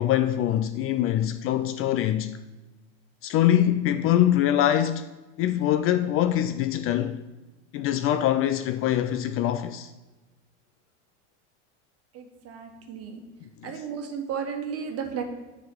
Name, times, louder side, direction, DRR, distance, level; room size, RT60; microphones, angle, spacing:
voice 1, 0.0-2.4 3.2-5.1 5.4-7.2 7.7-9.9 13.6-13.8, left 11 dB, 40° left, 0.4 m, -24 dB
voice 2, 12.1-13.2 13.6-15.2, right 7 dB, 45° right, 1.4 m, -34 dB
7.5 x 4.1 x 6.8 m
supercardioid pair, 115°, 35 cm